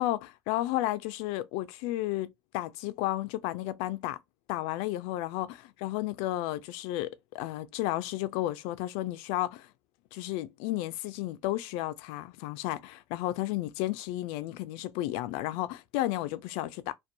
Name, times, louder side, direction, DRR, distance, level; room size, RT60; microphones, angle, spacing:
voice 1, 0.0-4.2 4.5-9.7 10.1-16.9, left 15 dB, 85° left, 0.4 m, -32 dB
2.5 x 2.2 x 2.6 m
cardioid pair, 125°, 9 cm